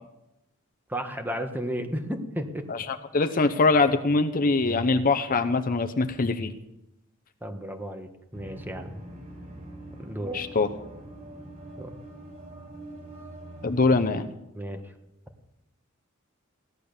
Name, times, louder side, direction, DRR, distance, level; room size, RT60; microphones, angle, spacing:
voice 1, 0.9-2.6 7.4-9.0 10.0-10.5 11.8-12.0 14.5-14.8, equal, 10° right, 5 dB, 1.5 m, -33 dB
voice 2, 3.1-6.5 10.3-10.7 13.6-14.3, left 3 dB, 40° left, 8 dB, 0.8 m, -23 dB
sound 1, 8.3-14.2, right 1 dB, 40° right, 4.7 m, -44 dB
16.5 x 11.0 x 6.8 m, 0.89 s
head